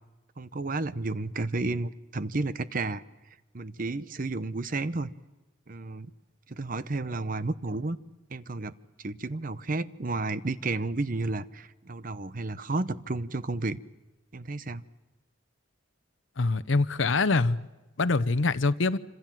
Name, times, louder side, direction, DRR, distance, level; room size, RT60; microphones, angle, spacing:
voice 1, 0.4-3.0 3.5-5.1 5.7-6.1 6.5-8.0 8.3-8.7 9.0-13.8 14.3-14.8, right 2 dB, 45° right, 0.9 m, -32 dB
voice 2, 16.4-17.7 18.0-19.0, left 3 dB, 75° left, 0.8 m, -24 dB
27.0 x 26.5 x 7.5 m
head